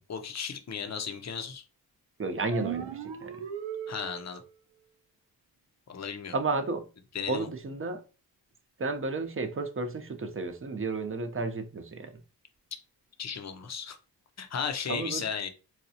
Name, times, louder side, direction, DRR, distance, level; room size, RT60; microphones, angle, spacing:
voice 1, 0.1-1.6 3.9-4.4 5.9-6.3 7.1-7.5 13.2-14.0 14.4-15.5, left 6 dB, 40° left, 0.7 m, -35 dB
voice 2, 2.2-3.4 6.3-6.9 7.3-8.0 8.8-12.2 14.9-15.2, right 3 dB, 30° right, 0.7 m, -32 dB
sound 1, 2.5-4.5, right 10 dB, 85° right, 0.6 m, -37 dB
4.1 x 2.3 x 2.8 m
cardioid pair, 55°, 43 cm